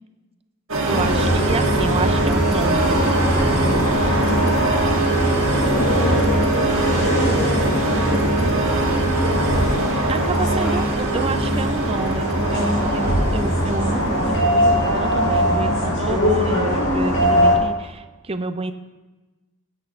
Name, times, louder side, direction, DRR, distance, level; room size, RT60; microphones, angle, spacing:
sound 1, 0.7-15.8, right 2 dB, 80° right, 1.5 m, -24 dB
sound 2, 0.9-17.5, equal, 85° left, 4.2 m, -21 dB
voice 1, 0.9-3.1 10.1-18.7, right 3 dB, 25° right, 9 dB, 0.5 m, -28 dB
sound 3, 1.7-15.8, equal, 5° right, 1.7 m, -34 dB
voice 2, 5.5-8.9, equal, 40° left, -4 dB, 1.6 m, -34 dB
21.5 x 8.0 x 2.5 m, 1.2 s
head